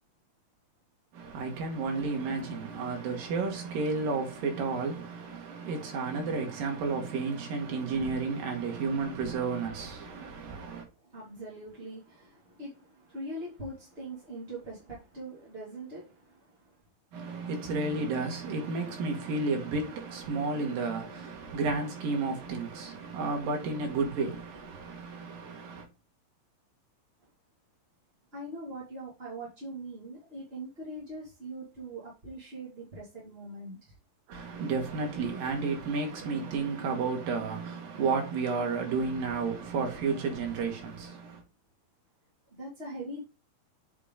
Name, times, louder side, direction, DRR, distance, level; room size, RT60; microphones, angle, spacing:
voice 1, 1.1-10.9 17.1-25.9 34.3-41.4, right 4 dB, 75° right, 3.7 m, -32 dB
voice 2, 11.0-16.8 28.3-33.9 42.5-43.3, right 1 dB, 20° right, 1.9 m, -42 dB
8.2 x 5.3 x 3.6 m
omnidirectional pair, 4.2 m